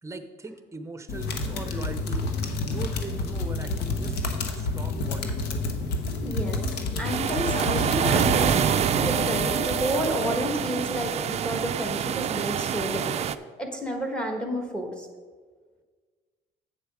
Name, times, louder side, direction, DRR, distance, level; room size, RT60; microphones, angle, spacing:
voice 1, 0.0-2.3 2.6-4.2 4.5-5.5, right 3 dB, 15° right, 9 dB, 0.7 m, -39 dB
sound 1, 1.1-9.1, left 3 dB, 85° left, 1.0 m, -29 dB
voice 2, 6.2-6.6 7.0-8.7 9.0-13.2 13.6-15.1, equal, 5° left, 4 dB, 1.4 m, -30 dB
sound 2, 7.0-13.3, right 9 dB, 40° right, 0.4 m, -26 dB
Wind instrument woodwind instrument, 7.3-10.5, left 7 dB, 50° left, 2.3 m, -35 dB
8.2 x 6.9 x 4.8 m, 1.5 s
cardioid pair, 110°, 17 cm